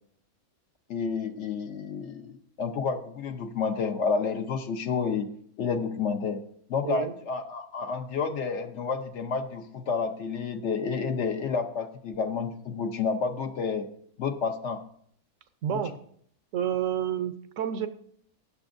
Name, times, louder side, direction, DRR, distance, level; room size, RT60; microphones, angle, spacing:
voice 1, 0.9-5.3 5.6-6.4 6.7-13.9 14.2-14.8 15.7-15.8, left 5 dB, 60° left, 8 dB, 0.9 m, -30 dB
voice 2, 6.8-7.1 15.6-16.0 16.5-17.9, right 9 dB, 65° right, 11 dB, 1.1 m, -29 dB
19.5 x 6.9 x 2.6 m, 0.64 s
omnidirectional pair, 1.6 m